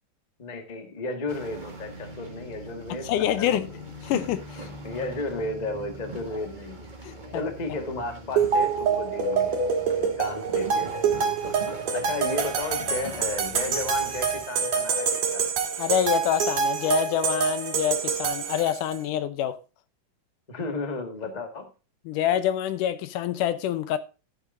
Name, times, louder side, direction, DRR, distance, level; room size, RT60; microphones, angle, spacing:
voice 1, 0.4-3.8 4.8-6.9 7.3-11.5 11.9-15.5 20.5-21.7, left 2 dB, 35° left, 0.6 m, -34 dB
sound 1, 1.3-14.4, right 1 dB, 25° right, 1.0 m, -42 dB
voice 2, 3.0-3.7 4.0-4.7 7.0-7.4 15.8-19.6 22.1-24.0, left 10 dB, 75° left, 2.2 m, -26 dB
sound 2, 8.4-19.0, right 6 dB, 60° right, 2.9 m, -26 dB
14.5 x 8.0 x 2.6 m
omnidirectional pair, 3.9 m